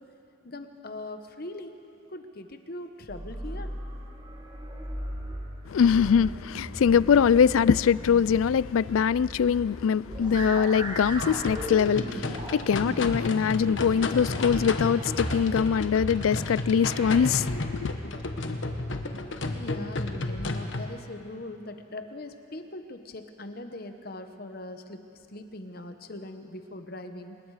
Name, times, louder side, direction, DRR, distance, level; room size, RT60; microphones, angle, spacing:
voice 1, 0.4-1.7 2.1-3.7 17.5-17.6 19.5-25.0 25.3-27.4, left 1 dB, 50° left, 1.1 m, -40 dB
sound 1, 3.1-17.4, equal, 20° right, 2.0 m, -38 dB
voice 2, 5.7-17.6, left 7 dB, 90° left, 0.4 m, -23 dB
sound 2, 11.2-20.9, left 2 dB, 70° left, 1.2 m, -32 dB
25.5 x 21.0 x 4.9 m
head